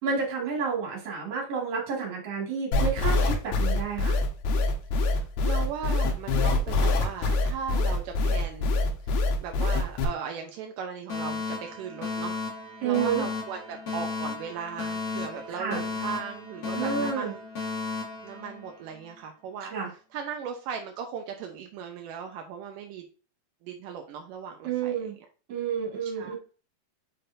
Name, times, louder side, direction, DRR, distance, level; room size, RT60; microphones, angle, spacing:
voice 1, 0.0-4.2 12.8-13.3 15.5-15.8 16.7-17.3 19.7-19.9 24.6-25.1 25.5-26.4, right 6 dB, 45° right, -2 dB, 2.7 m, -30 dB
sound 1, 2.7-10.1, left 2 dB, 85° left, 3.1 m, -24 dB
voice 2, 4.9-8.8 9.0-12.4 12.8-17.5 18.2-23.1 23.6-25.1 26.0-26.3, right 7 dB, 80° right, 3 dB, 1.9 m, -38 dB
Alarm, 11.1-19.1, left 4 dB, 40° left, 1.7 m, -34 dB
6.7 x 5.9 x 2.6 m, 0.36 s
omnidirectional pair, 4.7 m